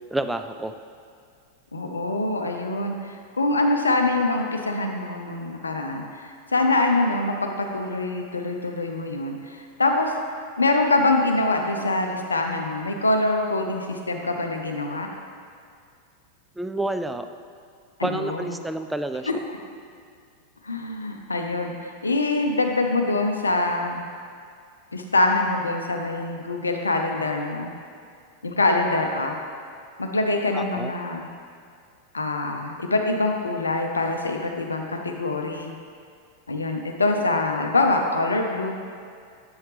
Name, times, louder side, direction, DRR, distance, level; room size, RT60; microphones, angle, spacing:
voice 1, 0.1-0.7 16.6-17.3 18.0-19.3 30.5-30.9, right 2 dB, 5° right, 8 dB, 0.3 m, -29 dB
voice 2, 1.7-10.1 10.6-15.1 18.0-18.5 19.3-19.4 20.6-24.0 24.9-27.7 28.4-29.4 30.0-31.3 32.1-35.7 36.5-38.7, left 2 dB, 75° left, 3 dB, 0.5 m, -24 dB
7.8 x 5.6 x 3.2 m, 2.3 s
figure-of-eight pair, 90°, 0 cm